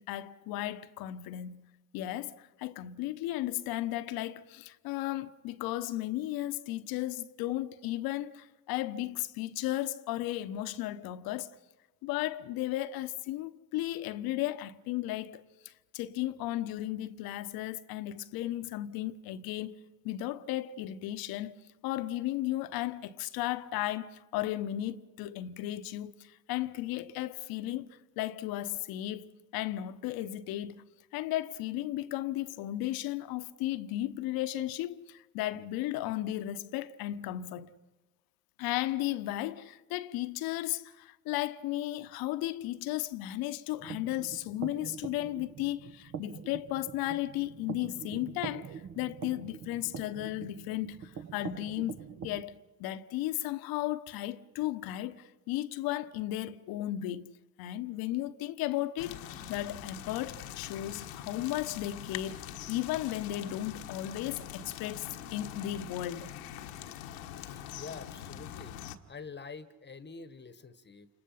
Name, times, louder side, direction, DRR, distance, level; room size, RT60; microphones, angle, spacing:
voice 1, 0.0-1.6 1.9-11.5 12.0-30.8 31.1-37.7 38.6-57.3 57.6-59.2 59.5-66.3, left 14 dB, 65° left, 1.1 m, -35 dB
sound 1, 43.8-52.4, right 7 dB, 45° right, 1.4 m, -44 dB
sound 2, 59.0-69.0, left 10 dB, 80° left, 1.3 m, -44 dB
voice 2, 67.2-71.1, left 5 dB, 25° left, 1.3 m, -47 dB
29.5 x 27.5 x 5.7 m
hypercardioid pair, 65°, 39 cm